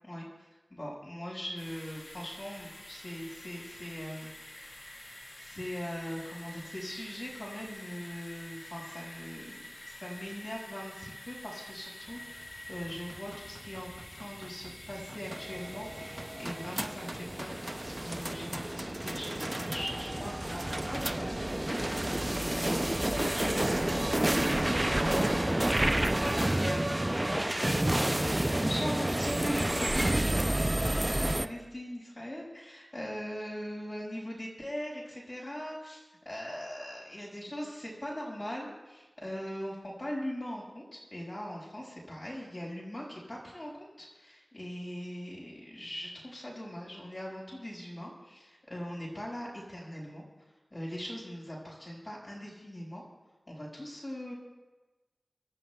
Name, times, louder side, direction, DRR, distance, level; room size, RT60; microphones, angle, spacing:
voice 1, 0.0-4.3 4.6-4.9 5.4-9.6 9.8-50.2 50.7-53.0 53.5-54.3, equal, 35° left, -4 dB, 5.2 m, -41 dB
sound 1, 1.6-18.7, left 1 dB, 65° left, 6.1 m, -48 dB
sound 2, 12.8-31.5, right 1 dB, 25° right, 0.4 m, -30 dB
29.5 x 13.0 x 2.3 m, 1.2 s
wide cardioid pair, 60°, 0 cm